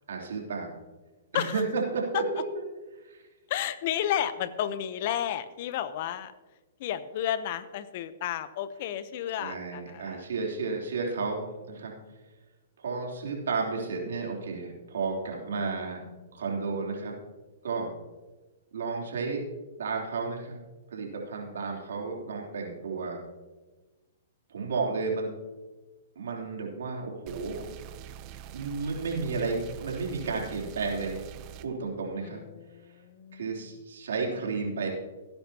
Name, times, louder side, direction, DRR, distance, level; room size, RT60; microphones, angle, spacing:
voice 1, 0.1-0.7 1.3-2.2 2.5-2.6 3.0-3.2 9.4-11.9 12.8-16.0 16.3-17.1 17.6-17.9 18.7-19.4 19.8-20.6 20.9-23.2 24.5-25.3 26.1-27.7 28.5-31.3 31.6-32.4 33.3-34.9, right 4 dB, 80° right, -1 dB, 3.4 m, -32 dB
voice 2, 3.5-6.3 6.8-10.3 21.7-21.8 32.2-33.7, left 11 dB, 50° left, 14 dB, 0.8 m, -32 dB
sound 1, 27.3-31.7, right 10 dB, 35° right, 0.7 m, -44 dB
17.5 x 10.0 x 2.9 m, 1.2 s
hypercardioid pair, 140°, 0 cm